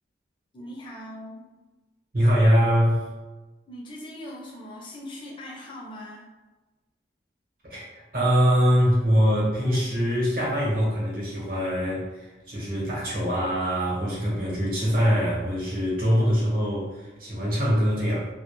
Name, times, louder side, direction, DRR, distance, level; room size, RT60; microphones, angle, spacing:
voice 1, 0.5-1.4 3.7-6.3, left 1 dB, 30° left, -3 dB, 0.5 m, -40 dB
voice 2, 2.1-3.1 7.6-7.9 8.1-18.3, equal, 50° right, -6 dB, 0.9 m, -23 dB
2.2 x 2.1 x 3.0 m, 1.2 s
head